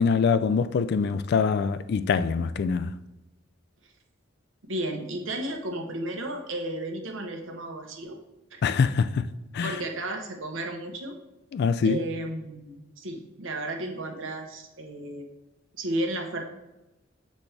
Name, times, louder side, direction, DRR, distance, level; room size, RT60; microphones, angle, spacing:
voice 1, 0.0-3.0 8.6-9.8 11.5-12.0, left 5 dB, 55° left, 0.3 m, -24 dB
voice 2, 4.7-8.2 8.5-8.6 9.6-11.1 11.8-15.2 15.8-16.4, right 1 dB, 80° right, 1.0 m, -33 dB
7.1 x 4.2 x 3.3 m
head